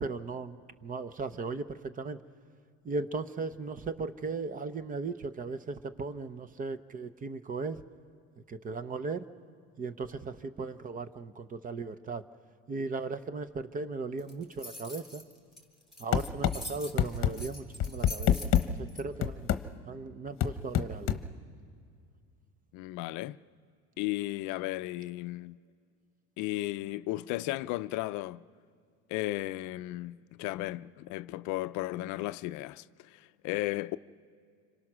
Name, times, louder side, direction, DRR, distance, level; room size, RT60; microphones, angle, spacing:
voice 1, 0.0-2.2 2.8-7.8 8.5-9.3 9.8-12.2 12.7-15.2 16.0-18.5 18.8-19.5 19.9-21.2, right 4 dB, 25° right, 0.7 m, -37 dB
sound 1, 14.2-19.0, left 1 dB, ahead, 3.6 m, -44 dB
sound 2, 16.1-16.6 17.0-17.3 17.8-18.7 19.2-19.6 20.4-21.2, left 11 dB, 40° left, 1.0 m, -25 dB
voice 2, 22.7-23.4 24.0-25.6 26.4-28.4 29.1-34.0, left 17 dB, 65° left, 0.5 m, -35 dB
26.5 x 26.0 x 6.2 m
cardioid pair, 130°, 31 cm